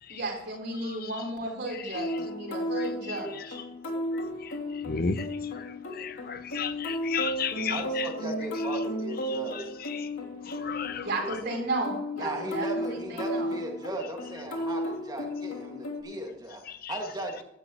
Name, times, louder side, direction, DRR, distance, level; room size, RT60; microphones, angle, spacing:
voice 1, 0.1-3.6 11.0-13.5, right 2 dB, 55° right, 4.0 m, -34 dB
voice 2, 0.8-1.2 1.7-2.2 2.8-3.6 3.9-8.1 8.5-8.8 9.2-10.1 10.4-11.4 16.8-17.0, left 6 dB, 50° left, 0.7 m, -36 dB
sound 1, 1.9-16.0, equal, 90° left, 2.9 m, -34 dB
voice 3, 7.7-9.6 12.2-16.6 16.9-17.4, right 1 dB, 20° right, 2.0 m, -37 dB
16.0 x 12.5 x 3.0 m
head